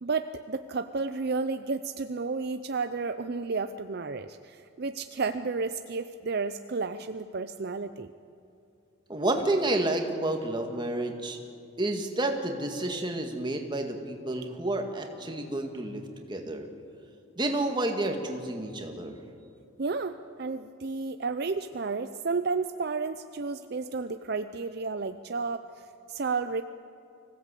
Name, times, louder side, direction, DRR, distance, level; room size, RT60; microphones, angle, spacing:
voice 1, 0.0-8.1 19.8-26.6, right 4 dB, 50° right, 9 dB, 0.6 m, -32 dB
voice 2, 9.1-11.4 11.8-16.7 17.4-19.2, right 1 dB, 20° right, 3 dB, 2.0 m, -30 dB
25.0 x 16.5 x 8.4 m, 2.7 s
head